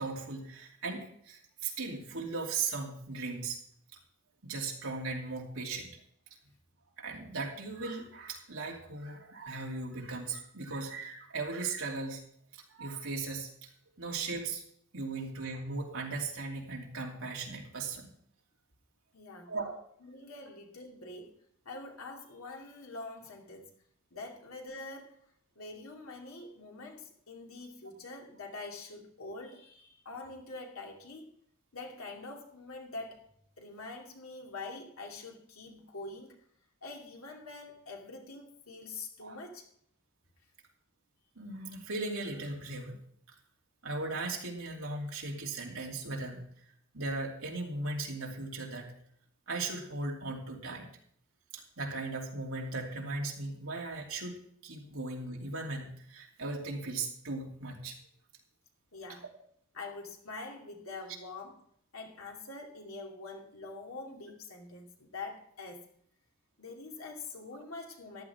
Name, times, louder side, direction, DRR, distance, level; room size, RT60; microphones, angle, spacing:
voice 1, 0.0-3.6 4.4-6.0 7.0-12.2 12.5-13.7 14.0-14.6 14.9-18.1 19.4-19.8 39.2-39.4 41.4-43.0 43.8-46.4 46.9-48.9 49.5-50.9 51.5-58.0, right 3 dB, 70° right, -1 dB, 2.8 m, -37 dB
voice 2, 19.1-19.5 20.0-21.3 21.6-23.7 24.1-25.2 25.6-31.3 31.7-33.3 33.6-36.4 36.8-39.7 58.9-59.2 59.7-61.6 61.9-65.9 66.6-68.2, left 3 dB, 75° left, 1 dB, 2.5 m, -45 dB
14.0 x 11.0 x 3.5 m, 0.64 s
head